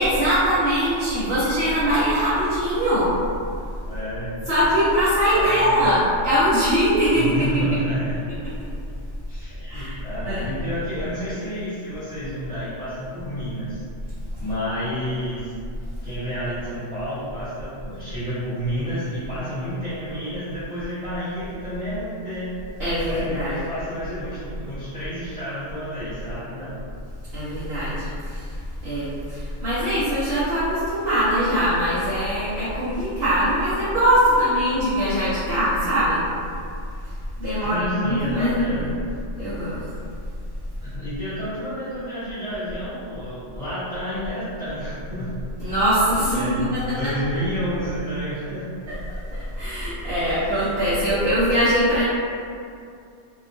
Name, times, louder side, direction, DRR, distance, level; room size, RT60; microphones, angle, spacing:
voice 1, 0.0-3.1 4.5-7.8 9.5-10.0 10.2-10.4 22.8-23.6 27.3-36.2 37.4-38.9 39.4-39.8 45.6-47.1 48.9-49.0 49.3-52.0, equal, 60° right, -12 dB, 0.9 m, -22 dB
voice 2, 3.9-4.4 5.3-5.7 7.1-8.2 9.3-13.8 14.3-15.5 16.0-22.5 23.0-26.8 37.6-38.8 40.8-45.3 46.3-48.7, equal, 30° left, -16 dB, 1.2 m, -30 dB
2.8 x 2.3 x 2.6 m, 2.4 s
omnidirectional pair, 1.2 m